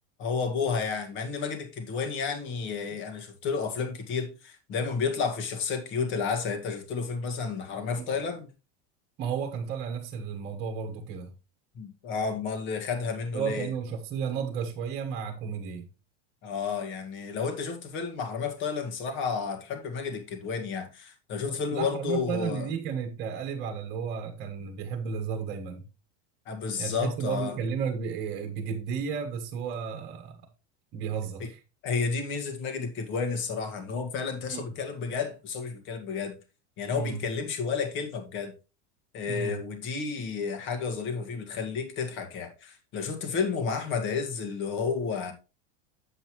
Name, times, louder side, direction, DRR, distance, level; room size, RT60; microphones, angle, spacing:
voice 1, 0.2-8.5 11.8-13.7 16.4-22.7 26.5-27.5 31.8-36.4 36.8-38.5 39.1-45.3, left 5 dB, 35° left, 1.8 m, -31 dB
voice 2, 9.2-11.3 13.3-15.9 21.5-25.8 26.8-30.4 30.9-31.6 34.5-34.6 36.9-37.2 39.3-39.6, right 6 dB, 30° right, 1.4 m, -33 dB
8.3 x 7.8 x 3.1 m
supercardioid pair, 175°, 34 cm